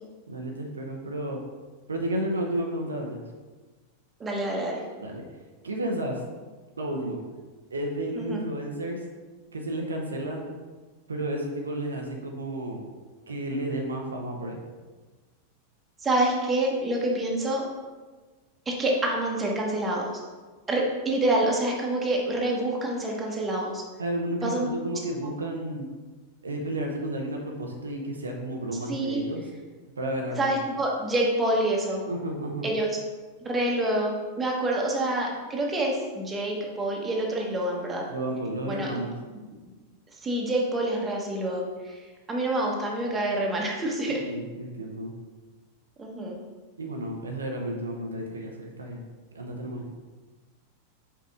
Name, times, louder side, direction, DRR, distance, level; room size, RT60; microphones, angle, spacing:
voice 1, 0.3-1.4 1.9-3.2 5.0-5.3 5.6-6.2 6.8-7.2 7.7-9.0 9.5-10.4 11.1-12.8 13.3-14.6 24.0-25.9 26.4-29.4 30.0-30.6 32.1-32.7 38.1-39.1 44.1-45.1 46.8-49.0 49.3-49.9, right 1 dB, 75° right, 1 dB, 0.7 m, -32 dB
voice 2, 4.2-4.8 8.2-8.4 16.0-17.6 18.7-20.1 20.7-23.8 24.4-24.7 28.9-29.2 30.4-32.0 32.6-33.0 33.4-38.0 38.7-38.9 40.2-44.2 46.0-46.4, right 1 dB, 15° right, -1 dB, 1.3 m, -27 dB
5.6 x 4.9 x 3.6 m, 1.3 s
figure-of-eight pair, 90°, 0 cm